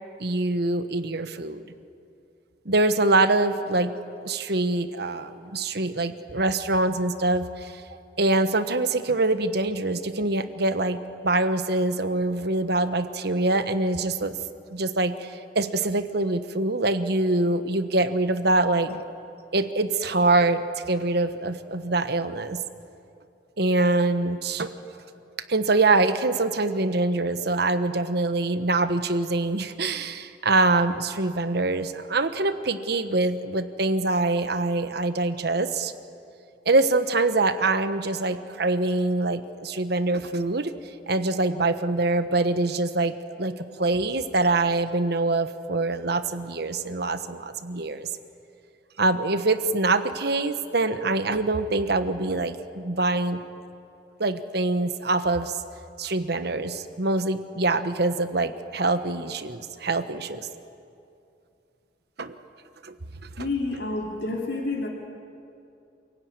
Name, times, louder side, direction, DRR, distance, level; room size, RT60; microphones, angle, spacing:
voice 1, 0.2-1.6 2.6-3.9 4.2-7.8 8.2-11.0 11.2-14.4 14.7-19.0 19.5-22.6 23.6-24.7 25.5-35.9 36.6-40.7 41.1-48.1 49.0-53.4 54.2-55.6 56.0-60.5 62.2-62.4 62.8-62.9 63.4-63.5, right 2 dB, 60° right, 10 dB, 1.2 m, -24 dB
voice 2, 63.4-64.9, left 2 dB, 65° left, -1 dB, 2.9 m, -29 dB
28.0 x 16.5 x 9.6 m, 2.6 s
head